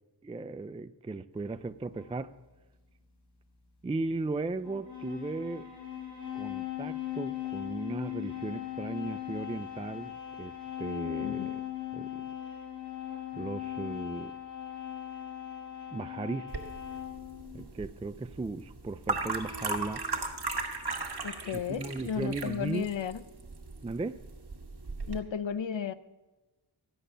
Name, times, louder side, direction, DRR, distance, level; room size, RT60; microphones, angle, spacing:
voice 1, 0.2-2.3 3.8-5.7 6.3-11.6 11.9-12.3 13.3-14.4 15.9-16.6 17.5-20.0 21.5-22.9 23.8-24.2, right 3 dB, 15° right, 0.3 m, -36 dB
sound 1, 1.9-2.1 4.5-17.7 19.3-20.2, left 11 dB, 40° left, 4.3 m, -39 dB
voice 2, 11.2-11.6 21.2-23.2 25.1-25.9, left 8 dB, 75° left, 0.7 m, -34 dB
sound 2, 16.5-25.2, right 3 dB, 55° right, 1.7 m, -37 dB
12.5 x 10.0 x 6.7 m
wide cardioid pair, 50°, 46 cm